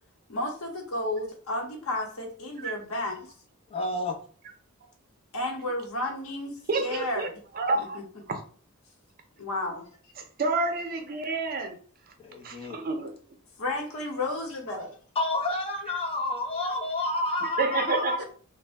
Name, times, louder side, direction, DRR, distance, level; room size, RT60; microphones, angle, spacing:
voice 1, 0.3-3.3 5.3-7.4 7.7-8.0 9.4-9.8 13.6-14.9 18.2-18.3, left 2 dB, 80° left, 2 dB, 0.8 m, -32 dB
voice 2, 3.7-4.2 12.2-12.8 15.2-18.2, left 2 dB, 25° left, 1 dB, 0.6 m, -29 dB
voice 3, 6.7-7.3 7.6-8.0 8.3-8.4 10.2-11.8 12.4-13.1 17.6-18.2, right 3 dB, 45° right, 5 dB, 0.5 m, -29 dB
2.6 x 2.1 x 3.3 m, 0.43 s
head